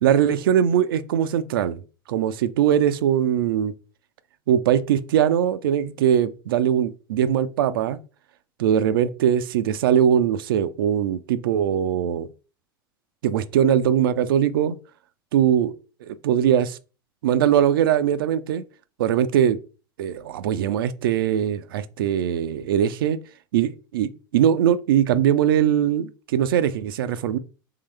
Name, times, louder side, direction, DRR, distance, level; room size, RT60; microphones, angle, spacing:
voice 1, 0.0-1.8 2.1-3.7 4.5-8.0 8.6-12.3 13.2-14.8 15.3-15.7 16.0-16.8 17.2-18.6 19.0-19.6 20.0-23.2 23.5-27.4, right 9 dB, 75° right, 0.4 m, -21 dB
3.8 x 3.3 x 3.2 m
hypercardioid pair, 85°, 12 cm